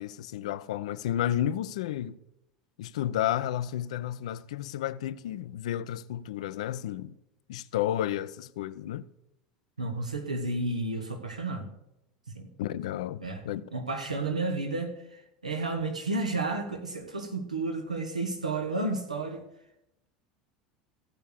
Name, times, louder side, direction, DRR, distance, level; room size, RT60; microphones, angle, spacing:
voice 1, 0.0-2.2 2.8-7.1 7.5-9.1 12.6-13.6, left 11 dB, 65° left, 0.5 m, -32 dB
voice 2, 9.8-11.7 12.3-12.5 13.2-13.4 13.7-19.4, right 2 dB, 85° right, 1.3 m, -32 dB
15.0 x 5.4 x 6.7 m
figure-of-eight pair, 75°, 4 cm